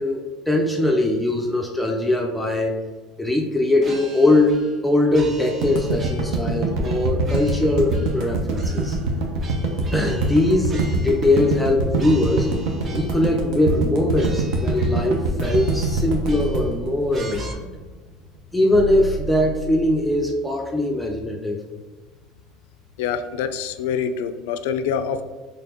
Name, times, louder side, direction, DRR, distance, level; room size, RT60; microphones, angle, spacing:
voice 1, 0.0-2.8 3.2-9.0 9.9-12.5 12.9-17.7 18.5-21.6, left 1 dB, 5° left, 1 dB, 0.5 m, -21 dB
sound 1, 3.8-4.8 5.1-6.5 6.8-8.3 8.5-11.7 12.0-13.3 13.7-13.9 14.1-15.1 15.4-16.8 17.1-17.5, right 2 dB, 35° right, 0.7 m, -39 dB
sound 2, 5.6-17.8, right 3 dB, 70° right, 0.7 m, -24 dB
sound 3, 15.7-17.2 18.7-20.2, right 4 dB, 90° right, 0.3 m, -32 dB
voice 2, 23.0-25.2, left 7 dB, 85° left, 10 dB, 0.3 m, -25 dB
4.1 x 3.3 x 2.8 m, 1.3 s
supercardioid pair, 115°, 0 cm